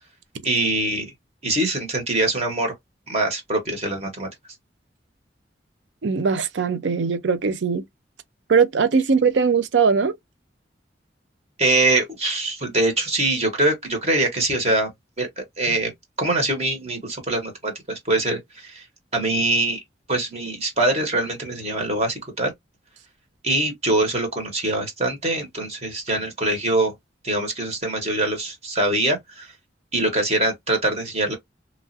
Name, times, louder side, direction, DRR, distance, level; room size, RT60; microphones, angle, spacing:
voice 1, 0.4-1.1 1.4-2.7 3.1-4.3 11.6-14.9 15.2-15.9 16.2-18.8 19.1-19.8 20.1-22.5 23.4-26.9 27.2-29.5 29.9-31.3, right 2 dB, 35° right, 1.1 m, -23 dB
voice 2, 6.0-7.8 8.5-10.1 15.7-15.8, right 5 dB, 85° right, 0.5 m, -20 dB
3.0 x 2.4 x 2.6 m
head